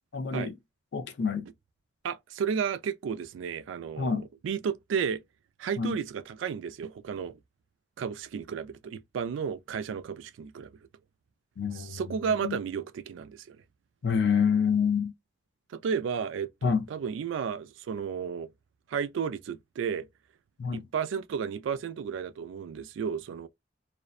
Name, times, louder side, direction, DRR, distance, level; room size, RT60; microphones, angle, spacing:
voice 1, 0.1-0.6 0.9-1.5 4.0-4.3 5.8-5.9 11.6-12.0 12.4-12.6 14.0-15.1 16.6-16.9 20.6-20.9, left 6 dB, 60° left, 0.4 m, -27 dB
voice 2, 2.0-5.2 5.6-7.4 8.0-10.7 11.7-13.6 15.7-18.5 18.9-20.1 20.7-23.5, right 7 dB, 85° right, 0.3 m, -33 dB
2.5 x 2.0 x 2.4 m
head